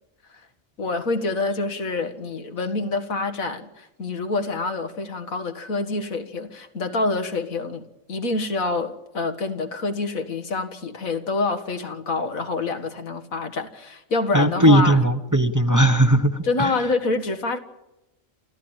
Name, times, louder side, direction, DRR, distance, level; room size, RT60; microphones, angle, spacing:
voice 1, 0.8-15.0 16.4-17.6, left 3 dB, 90° left, 2.1 m, -27 dB
voice 2, 14.3-16.9, right 1 dB, 15° right, 0.9 m, -18 dB
27.5 x 15.0 x 9.0 m
omnidirectional pair, 1.4 m